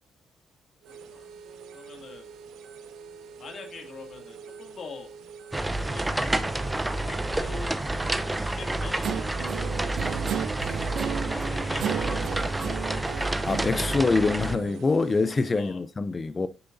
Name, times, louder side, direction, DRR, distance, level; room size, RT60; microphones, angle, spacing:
sound 1, 0.8-15.7, right 6 dB, 85° right, 1.1 m, -46 dB
voice 1, 0.9-1.3 1.7-2.3 3.4-5.1 5.8-6.4 7.0-7.8 8.4-9.4 11.3-12.8 15.5-15.8, left 4 dB, 50° left, 2.4 m, -44 dB
sound 2, 5.5-14.6, right 1 dB, 10° right, 0.7 m, -29 dB
Guitar, 9.0-14.8, right 9 dB, 70° right, 0.6 m, -34 dB
voice 2, 13.4-16.5, left 3 dB, 30° left, 0.5 m, -25 dB
9.5 x 6.8 x 2.7 m
cardioid pair, 90°, 0 cm